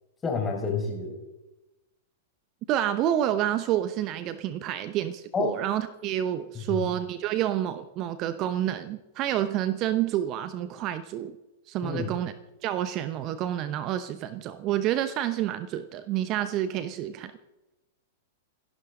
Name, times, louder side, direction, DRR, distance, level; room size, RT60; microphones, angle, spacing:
voice 1, 0.2-1.2 5.3-5.5 6.6-6.9 11.8-12.1, left 5 dB, 20° left, 0 dB, 5.3 m, -29 dB
voice 2, 2.7-11.4 11.7-12.3 12.6-17.3, right 11 dB, 40° right, 12 dB, 0.9 m, -29 dB
27.0 x 11.5 x 3.8 m, 1.0 s
figure-of-eight pair, 100°, 0 cm